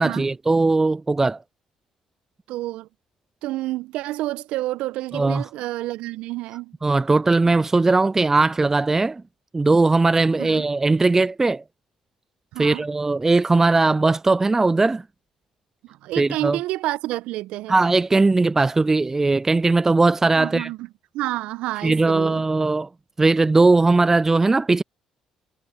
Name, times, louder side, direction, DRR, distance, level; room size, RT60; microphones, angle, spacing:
voice 1, 0.0-1.4 5.1-5.4 6.8-9.2 9.5-11.6 12.6-15.0 16.2-16.6 17.7-20.7 21.8-22.9 23.2-24.8, right 3 dB, 20° right, 0.4 m, -19 dB
voice 2, 2.5-2.9 3.4-6.7 10.4-10.6 12.5-12.8 15.8-17.8 20.3-20.9 21.1-22.4, right 16 dB, 70° right, 1.6 m, -29 dB
hypercardioid pair, 50°, 2 cm